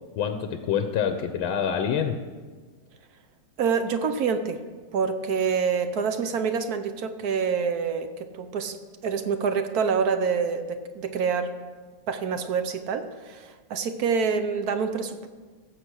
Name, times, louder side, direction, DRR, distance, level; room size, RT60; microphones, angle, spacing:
voice 1, 0.2-2.2, left 8 dB, 90° left, 7 dB, 1.6 m, -26 dB
voice 2, 3.6-4.6 4.9-11.5 12.1-15.3, right 6 dB, 60° right, 9 dB, 1.1 m, -27 dB
16.0 x 7.3 x 6.3 m, 1.4 s
omnidirectional pair, 2.2 m